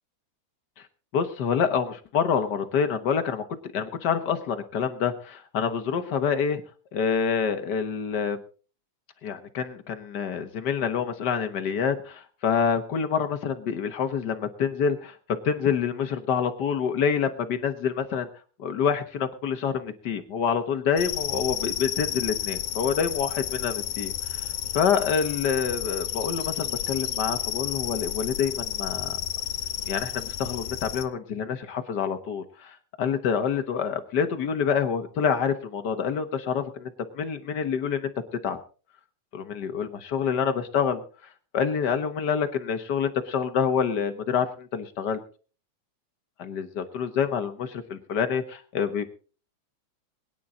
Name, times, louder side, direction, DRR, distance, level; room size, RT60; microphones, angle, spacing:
voice 1, 1.1-3.4 3.7-6.6 6.9-8.4 9.2-15.2 15.4-18.3 18.6-29.2 29.9-38.1 38.4-38.6 39.3-41.0 41.5-45.2 46.4-49.1, left 7 dB, 60° left, 8 dB, 1.1 m, -27 dB
sound 1, 21.0-31.1, left 12 dB, 85° left, 2.3 m, -31 dB
21.5 x 10.0 x 3.7 m, 0.38 s
omnidirectional pair, 3.4 m